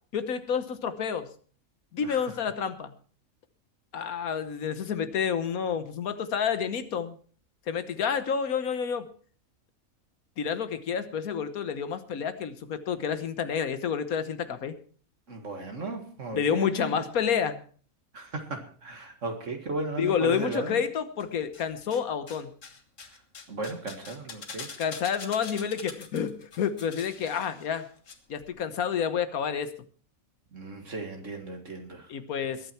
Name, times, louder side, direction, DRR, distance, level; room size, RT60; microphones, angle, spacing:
voice 1, 0.1-1.3 1.9-2.9 3.9-7.1 7.7-9.1 10.4-14.7 16.3-17.6 20.0-22.5 24.8-27.9 28.3-29.7 32.1-32.7, left 7 dB, 90° left, 11 dB, 1.6 m, -29 dB
voice 2, 15.3-17.0 18.1-20.8 23.5-24.7 30.5-32.1, right 3 dB, 60° right, 4 dB, 2.1 m, -36 dB
sound 1, 21.2-22.0 22.3-28.1 28.4-28.5, left 5 dB, 65° left, 1.9 m, -44 dB
21.0 x 9.2 x 4.4 m, 0.44 s
omnidirectional pair, 1.5 m